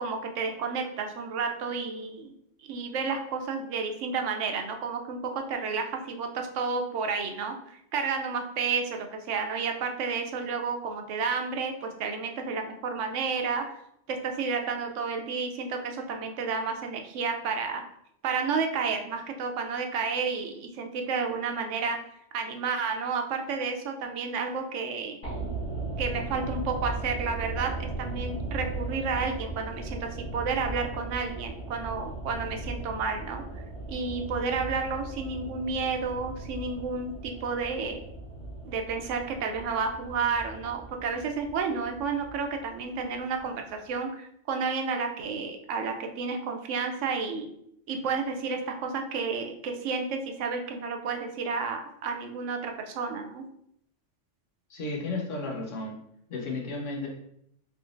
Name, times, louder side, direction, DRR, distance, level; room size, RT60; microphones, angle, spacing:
voice 1, 0.0-2.3 2.6-13.6 14.1-17.8 18.2-22.0 22.3-25.2 26.0-33.4 33.9-38.0 38.6-47.5 47.9-53.5, right 5 dB, 80° right, 5 dB, 0.9 m, -31 dB
sound 1, 25.2-43.4 43.7-43.8, right 2 dB, 30° left, 0.8 m, -37 dB
voice 2, 54.7-56.0 56.3-57.1, left 3 dB, 85° left, -1 dB, 1.2 m, -33 dB
3.7 x 3.4 x 2.5 m, 0.74 s
omnidirectional pair, 1.3 m